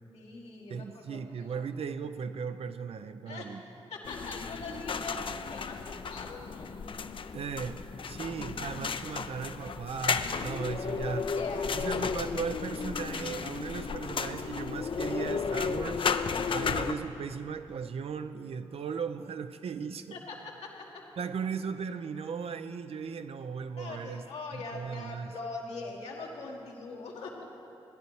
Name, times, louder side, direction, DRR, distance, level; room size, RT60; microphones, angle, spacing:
voice 1, 0.1-1.6 3.3-3.5 3.9-6.7 11.3-11.7 16.3-16.6 20.1-20.7 23.8-27.5, left 3 dB, 80° left, -2 dB, 1.6 m, -42 dB
voice 2, 0.7-3.6 7.3-11.3 11.7-16.1 16.5-20.2 21.2-24.2 24.5-25.3, right 6 dB, 65° right, 10 dB, 0.5 m, -37 dB
sound 1, 4.0-16.9, left 5 dB, 50° left, 0.5 m, -33 dB
15.0 x 10.5 x 4.6 m, 2.8 s
supercardioid pair, 45°, 11 cm